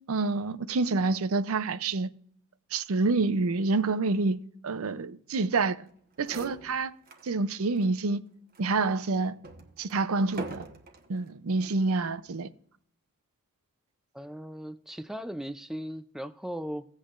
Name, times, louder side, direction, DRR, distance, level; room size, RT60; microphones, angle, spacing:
voice 1, 0.1-2.1 2.7-5.8 6.2-6.9 7.2-8.2 8.6-9.4 9.8-10.6 11.1-12.5, right 3 dB, 70° right, 0.6 m, -27 dB
sound 1, 5.9-6.0 6.2-7.3 7.8-7.9 8.5-11.1 11.9-12.2, right 2 dB, 45° right, 1.1 m, -44 dB
voice 2, 14.1-16.9, equal, ahead, 0.4 m, -37 dB
17.0 x 8.2 x 2.5 m
head